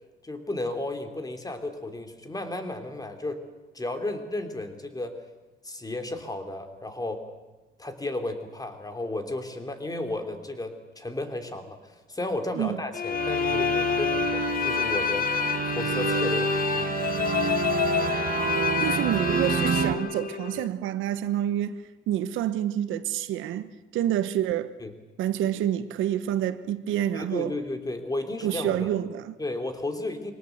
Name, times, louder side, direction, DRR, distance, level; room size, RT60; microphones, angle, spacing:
voice 1, 0.2-3.4 3.7-5.2 5.6-7.2 7.8-15.4 15.7-16.9 24.8-24.9 27.1-29.0 29.4-30.3, left 2 dB, 20° left, 3.0 m, -33 dB
sound 1, 12.9-20.7, left 8 dB, 45° left, 0.7 m, -28 dB
sound 2, 13.1-19.9, right 6 dB, 45° right, 1.6 m, -28 dB
voice 2, 18.8-21.8 22.1-24.7 25.2-27.6 28.4-29.4, right 11 dB, 90° right, 1.1 m, -28 dB
22.5 x 18.5 x 8.0 m
cardioid pair, 90°, 20 cm